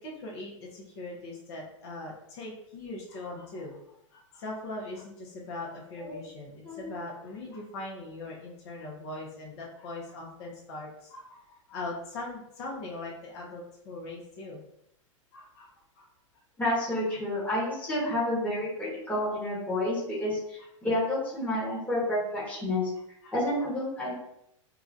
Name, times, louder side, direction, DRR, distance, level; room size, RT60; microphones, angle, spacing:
voice 1, 0.0-3.8 4.1-14.6 15.3-15.7 16.0-16.1 16.3-16.4 20.6-20.7 23.2-23.3, left 2 dB, 55° left, -3 dB, 0.9 m, -40 dB
voice 2, 16.6-20.4 20.8-22.9 23.3-24.1, left 1 dB, 10° left, -8 dB, 1.2 m, -29 dB
2.9 x 2.4 x 2.5 m, 0.77 s
hypercardioid pair, 115°, 17 cm